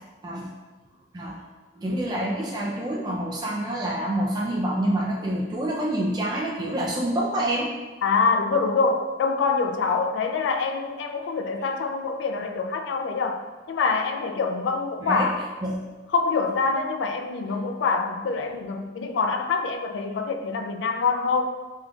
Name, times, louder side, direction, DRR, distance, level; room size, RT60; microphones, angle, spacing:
voice 1, 1.8-7.7 15.0-15.3 15.6-15.8, right 1 dB, 20° right, -3 dB, 0.3 m, -27 dB
voice 2, 8.0-15.4 16.1-21.5, left 4 dB, 75° left, 6 dB, 0.3 m, -25 dB
3.8 x 3.6 x 2.3 m, 1.3 s
head